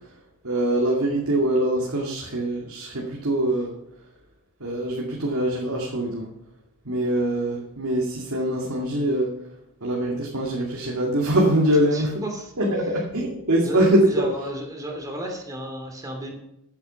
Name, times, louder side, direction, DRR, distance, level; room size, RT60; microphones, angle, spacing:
voice 1, 0.4-3.7 4.6-6.3 6.8-9.3 9.8-12.2 12.6-14.3, right 1 dB, 80° right, -2 dB, 2.3 m, -23 dB
voice 2, 11.9-12.5 12.8-12.9 13.6-16.3, right 1 dB, 15° right, 1 dB, 2.8 m, -33 dB
14.0 x 8.5 x 5.8 m, 0.83 s
head